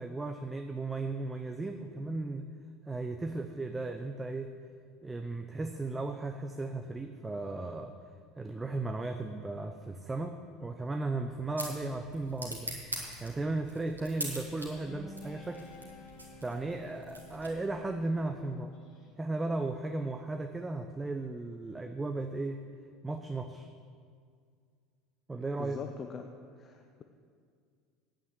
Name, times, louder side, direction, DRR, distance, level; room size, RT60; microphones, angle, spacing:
voice 1, 0.0-2.5 2.9-4.5 5.0-7.9 8.4-12.8 13.2-15.6 16.4-18.7 19.2-22.6 23.0-23.7 25.3-25.8, right 2 dB, 15° right, 6 dB, 0.6 m, -36 dB
sound 1, 10.9-17.9, right 1 dB, 85° right, 1.7 m, -44 dB
Guitar, 14.4-19.1, left 2 dB, 50° left, 2.4 m, -52 dB
voice 2, 25.6-26.3 26.6-27.0, left 6 dB, 30° left, 5 dB, 0.7 m, -41 dB
9.0 x 8.9 x 7.7 m, 2.2 s
figure-of-eight pair, 70°, 0 cm